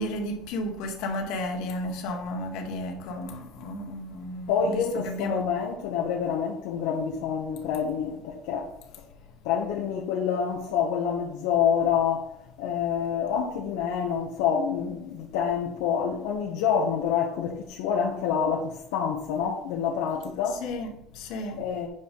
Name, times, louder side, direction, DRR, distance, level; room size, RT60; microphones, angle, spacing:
voice 1, 0.0-5.5 20.5-21.7, left 1 dB, 65° left, 2.1 m, -33 dB
voice 2, 4.5-8.7 9.4-12.3 12.6-20.7 21.6-21.9, left 7 dB, 80° left, 1.3 m, -27 dB
9.2 x 4.9 x 5.5 m
cardioid pair, 165°, 0 cm